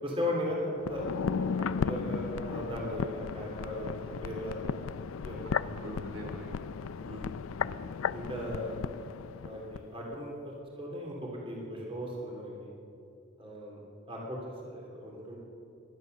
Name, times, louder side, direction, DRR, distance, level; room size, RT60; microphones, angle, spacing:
voice 1, 0.0-5.0 5.2-5.7 7.0-7.3 8.1-8.8 9.4-12.7 13.4-13.8 14.1-15.4, equal, 25° right, -2 dB, 3.0 m, -37 dB
sound 1, 0.8-9.9 10.1-10.2, left 6 dB, 85° left, 0.4 m, -35 dB
voice 2, 5.4-6.9 7.6-8.2, right 1 dB, 85° right, 0 dB, 4.0 m, -46 dB
18.5 x 11.5 x 6.6 m, 2.6 s
head